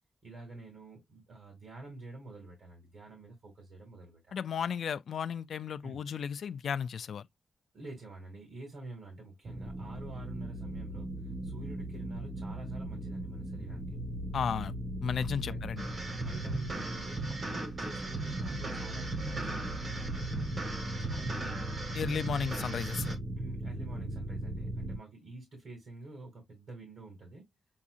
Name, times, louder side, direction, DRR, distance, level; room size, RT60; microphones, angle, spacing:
voice 1, 0.2-4.6 5.8-6.0 7.7-14.0 15.2-15.7 16.1-21.7 23.4-27.5, right 2 dB, 60° right, 2.2 m, -48 dB
voice 2, 4.3-7.2 14.3-14.7 15.0-15.8 21.9-23.2, left 7 dB, 75° left, 0.3 m, -34 dB
sound 1, 9.5-25.0, right 1 dB, 25° right, 0.7 m, -39 dB
sound 2, 15.8-23.1, right 2 dB, 40° right, 1.6 m, -38 dB
7.1 x 2.7 x 2.4 m
wide cardioid pair, 165°, 0 cm